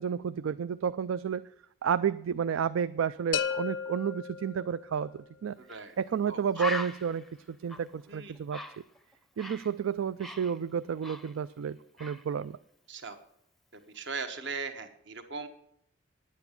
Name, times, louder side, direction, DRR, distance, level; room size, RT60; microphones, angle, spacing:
voice 1, 0.0-1.4 1.8-5.6 6.0-8.6 9.4-12.6, right 7 dB, 90° right, 14 dB, 0.4 m, -31 dB
sound 1, 3.3-5.2, left 7 dB, 70° left, 0.5 m, -34 dB
voice 2, 5.6-5.9 6.3-6.4 8.1-8.3 12.9-13.2 13.9-15.5, right 4 dB, 60° right, 7 dB, 1.2 m, -38 dB
Bird, 5.7-5.8 6.2-6.3 6.5-9.7 10.0-11.7 12.0-12.3, left 2 dB, ahead, 0.5 m, -40 dB
9.8 x 8.3 x 8.3 m, 0.70 s
head